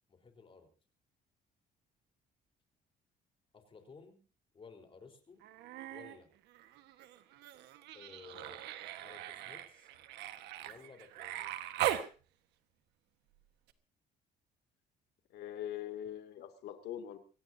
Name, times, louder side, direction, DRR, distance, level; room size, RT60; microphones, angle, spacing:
voice 1, 0.1-0.7 3.5-4.2 4.5-5.4 5.9-6.3 7.9-8.6 9.0-9.9 10.6-11.7, left 5 dB, 30° left, 4 dB, 4.2 m, -55 dB
Human voice, 5.4-6.2 6.5-12.1 13.7-13.8, right 13 dB, 85° right, 1.5 m, -40 dB
voice 2, 15.3-17.2, left 11 dB, 80° left, 6 dB, 2.6 m, -42 dB
25.0 x 18.0 x 2.8 m, 0.35 s
cardioid pair, 110°, 17 cm